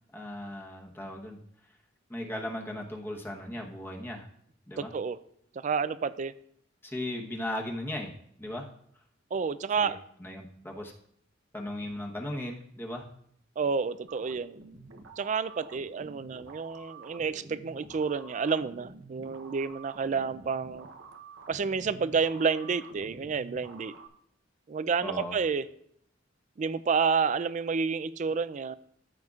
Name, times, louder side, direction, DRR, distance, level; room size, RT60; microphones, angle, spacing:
voice 1, 0.1-1.4 2.1-4.3 4.7-4.9 6.8-8.7 9.8-9.9 10.2-10.9 11.5-13.1 25.0-25.3, left 1 dB, 10° left, 1.0 m, -37 dB
voice 2, 4.8-5.2 5.6-6.3 9.3-10.0 13.6-14.6 15.2-20.9 21.5-23.9 24.7-25.6 26.6-28.8, right 5 dB, 40° right, 0.3 m, -30 dB
sound 1, 14.1-24.1, right 3 dB, 90° right, 0.8 m, -49 dB
14.0 x 6.5 x 2.4 m
head